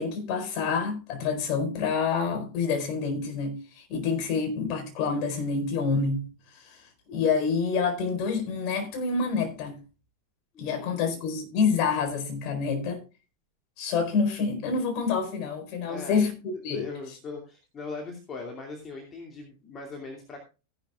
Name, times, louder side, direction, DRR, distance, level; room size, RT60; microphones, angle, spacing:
voice 1, 0.0-6.3 7.1-9.8 10.6-13.0 13.8-16.3 16.6-16.8, left 5 dB, 40° left, 4.4 m, -27 dB
voice 2, 10.5-11.2 15.9-16.2 16.7-20.4, left 4 dB, 25° left, 2.5 m, -40 dB
15.5 x 11.5 x 2.4 m
figure-of-eight pair, 90°, 0 cm